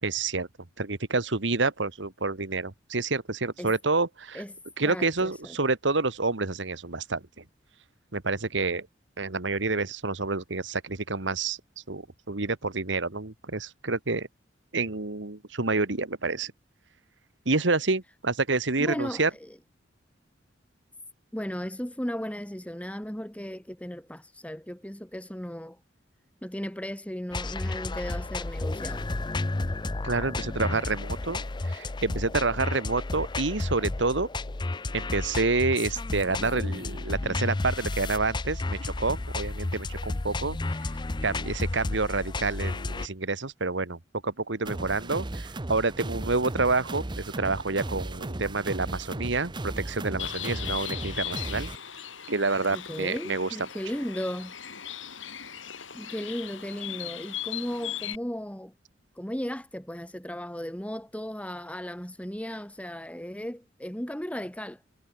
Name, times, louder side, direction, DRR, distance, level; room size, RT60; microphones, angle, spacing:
voice 1, 0.0-0.5 0.8-4.4 4.8-7.2 8.1-8.9 9.2-11.6 11.9-14.3 14.7-16.5 17.4-19.3 30.0-34.3 34.9-40.9 41.2-51.7 52.3-53.5, right 3 dB, 70° right, 1.7 m, -28 dB
voice 2, 4.8-5.6 18.8-19.5 21.3-25.8 26.4-29.2 50.4-50.5 52.7-54.5 55.9-58.7 59.1-64.8, equal, 5° left, 1.5 m, -36 dB
sound 1, 27.3-43.1, left 2 dB, 25° left, 0.6 m, -32 dB
sound 2, 44.6-51.8, right 1 dB, 25° right, 0.9 m, -36 dB
Bird, 50.2-58.2, left 11 dB, 90° left, 6.9 m, -38 dB
head